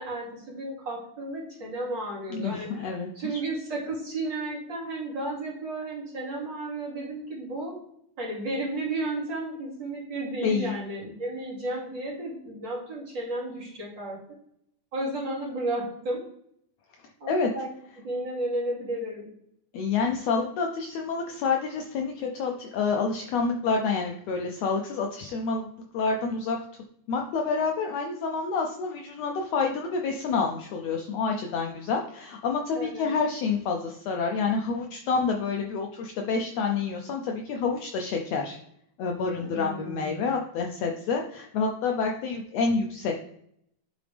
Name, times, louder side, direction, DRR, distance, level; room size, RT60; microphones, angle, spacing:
voice 1, 0.0-7.8 8.2-14.2 14.9-16.2 17.2-17.7 18.0-19.3 32.7-33.1 39.4-40.2, right 2 dB, 40° right, -5 dB, 2.7 m, -33 dB
voice 2, 2.3-3.4 10.4-10.7 17.3-17.5 19.7-25.7 25.9-26.6 27.1-38.6 39.0-43.1, left 4 dB, 75° left, 2 dB, 1.6 m, -28 dB
10.0 x 3.9 x 3.4 m, 0.71 s
omnidirectional pair, 3.4 m